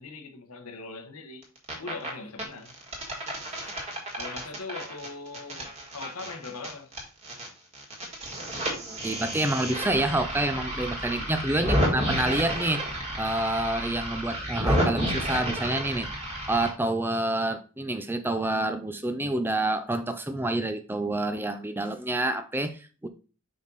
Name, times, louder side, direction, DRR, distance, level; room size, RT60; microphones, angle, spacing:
voice 1, 0.0-1.5 1.8-2.8 4.2-6.9 11.2-11.5, left 3 dB, 90° left, 1.1 m, -41 dB
sound 1, 1.4-2.1 2.4-7.5 7.7-16.7, equal, 30° right, 1.8 m, -31 dB
voice 2, 9.0-12.9 13.2-16.1 16.5-23.1, right 1 dB, 10° right, 0.4 m, -28 dB
5.3 x 5.1 x 4.0 m
head